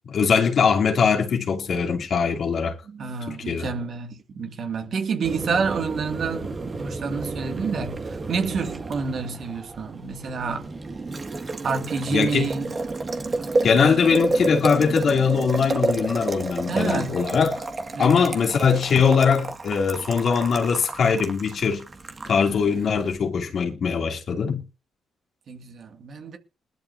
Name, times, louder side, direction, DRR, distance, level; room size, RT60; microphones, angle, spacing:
voice 1, 0.1-2.8 3.3-3.7 12.1-12.5 13.6-17.6 18.0-21.8 22.3-24.6, left 6 dB, 55° left, 2.6 m, -21 dB
voice 2, 2.9-10.7 11.6-12.7 16.7-17.2 17.9-18.3 25.5-26.4, right 5 dB, 55° right, 2.2 m, -28 dB
Boiling, 5.2-23.2, right 3 dB, 30° right, 1.9 m, -31 dB
21.0 x 12.0 x 2.7 m
cardioid pair, 90°, 0 cm